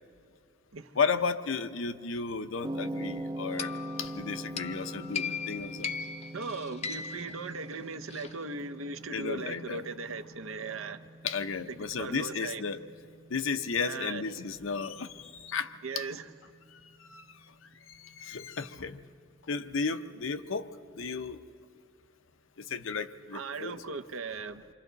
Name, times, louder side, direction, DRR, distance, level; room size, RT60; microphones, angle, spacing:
voice 1, 0.9-5.9 9.1-9.9 11.2-12.8 13.3-16.1 17.1-17.2 17.9-19.0 19.5-21.4 22.6-23.9, left 5 dB, 70° left, 0.7 m, -34 dB
sound 1, 2.6-20.9, right 1 dB, 20° right, 0.5 m, -44 dB
sound 2, 3.6-8.3, left 6 dB, 30° left, 0.5 m, -39 dB
voice 2, 6.3-11.0 12.0-12.6 13.8-14.2 15.8-16.2 23.3-24.6, right 4 dB, 80° right, 0.8 m, -38 dB
28.0 x 25.0 x 4.0 m
head